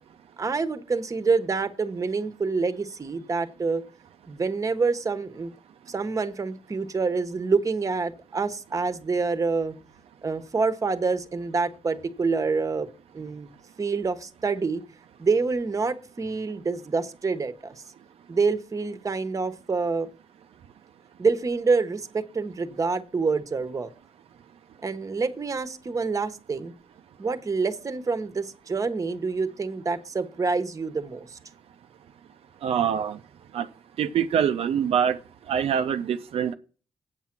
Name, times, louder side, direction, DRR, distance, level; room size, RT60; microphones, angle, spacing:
voice 1, 0.4-3.8 4.3-5.5 5.9-9.7 10.2-12.9 13.1-13.5 13.8-14.8 15.2-17.7 18.3-20.1 21.2-23.9 24.8-26.7 27.2-31.4, right 4 dB, 30° right, 1.1 m, -27 dB
voice 2, 32.6-33.2 33.5-33.7 34.0-35.2 35.5-36.5, right 8 dB, 75° right, 0.5 m, -24 dB
8.4 x 7.3 x 6.0 m
cardioid pair, 105°, 10 cm